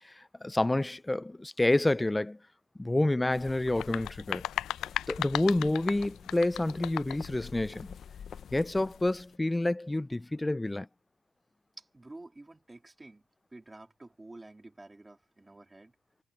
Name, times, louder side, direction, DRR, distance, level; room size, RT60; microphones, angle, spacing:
voice 1, 0.0-2.4 2.8-4.4 5.1-8.0 8.5-10.9, left 2 dB, 10° left, 0.5 m, -28 dB
sound 1, 3.3-9.4, left 8 dB, 60° left, 1.0 m, -47 dB
sound 2, 3.7-7.3, left 13 dB, 80° left, 0.3 m, -36 dB
voice 2, 11.8-13.2 13.5-15.9, right 2 dB, 15° right, 2.3 m, -50 dB
cardioid pair, 90°, 0 cm